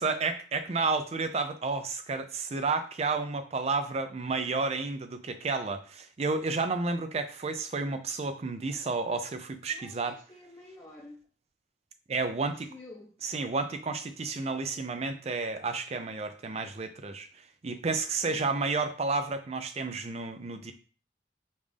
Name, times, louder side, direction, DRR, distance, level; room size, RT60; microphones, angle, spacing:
voice 1, 0.0-10.2 12.1-12.7 13.2-17.3 17.6-20.7, right 4 dB, 35° right, 0.4 m, -31 dB
voice 2, 9.7-11.2 12.4-13.1 18.3-18.5, left 2 dB, 20° left, 0.7 m, -49 dB
5.3 x 2.5 x 3.3 m
head